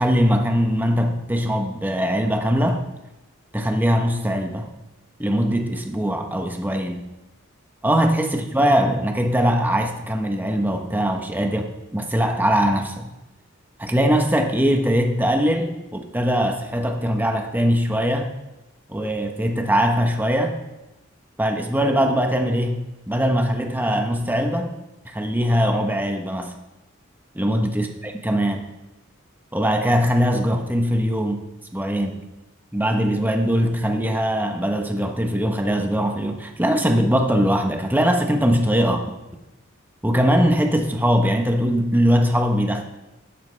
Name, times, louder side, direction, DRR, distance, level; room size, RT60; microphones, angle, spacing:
voice 1, 0.0-2.8 3.5-4.7 5.2-7.0 7.8-13.1 13.8-18.3 18.9-20.6 21.4-24.7 25.0-26.6 27.3-28.7 29.5-31.4 31.7-32.3 32.7-39.0 40.0-42.8, equal, 10° right, 4 dB, 0.9 m, -21 dB
12.5 x 9.8 x 3.3 m, 0.98 s
head